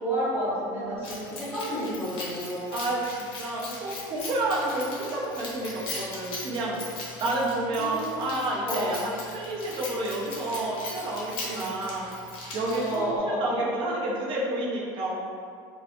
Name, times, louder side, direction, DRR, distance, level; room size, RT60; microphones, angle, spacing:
voice 1, 0.0-2.8 7.8-8.4 8.7-9.0 11.4-11.7 12.7-13.6, equal, 20° right, -10 dB, 1.0 m, -31 dB
Keys jangling, 1.0-13.2, left 2 dB, 55° left, 0.8 m, -39 dB
voice 2, 2.7-6.8 7.2-12.1 12.5-15.2, right 2 dB, 50° right, -4 dB, 0.6 m, -30 dB
2.6 x 2.1 x 2.9 m, 2.2 s
supercardioid pair, 110°, 11 cm